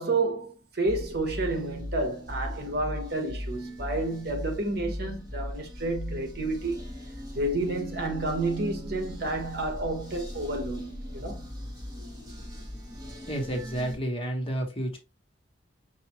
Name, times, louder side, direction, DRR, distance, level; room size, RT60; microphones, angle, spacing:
voice 1, 0.0-6.9 7.3-11.5, right 2 dB, 55° right, 1.2 m, -30 dB
sound 1, 0.9-14.0, equal, 20° right, 1.8 m, -39 dB
voice 2, 13.3-15.0, right 1 dB, 30° left, 1.3 m, -30 dB
5.8 x 2.7 x 2.9 m
head